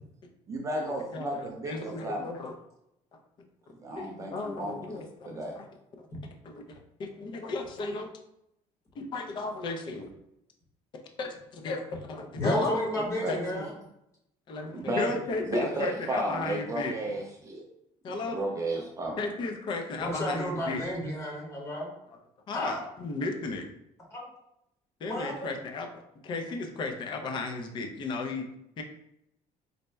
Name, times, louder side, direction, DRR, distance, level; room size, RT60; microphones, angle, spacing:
voice 1, 0.5-2.3 3.8-5.5 13.2-13.3 14.7-15.2 15.5-17.7 18.1-19.2, right 1 dB, 25° right, 0 dB, 0.4 m, -33 dB
voice 2, 1.1-2.6 3.1-3.2 3.9-5.7 6.4-8.1 9.0-10.1 11.2-12.9 13.3-13.6 14.5-16.9 18.0-18.4 19.2-20.8 22.1-22.2 22.5-23.7 25.0-25.9 26.2-28.4 28.8-28.9, left 3 dB, 35° left, 3 dB, 0.5 m, -34 dB
voice 3, 12.3-13.7 20.0-21.9 22.5-22.9 24.1-24.2 25.1-25.5, equal, 20° left, -3 dB, 1.1 m, -32 dB
4.0 x 2.1 x 3.3 m, 0.82 s
cardioid pair, 170°, 13 cm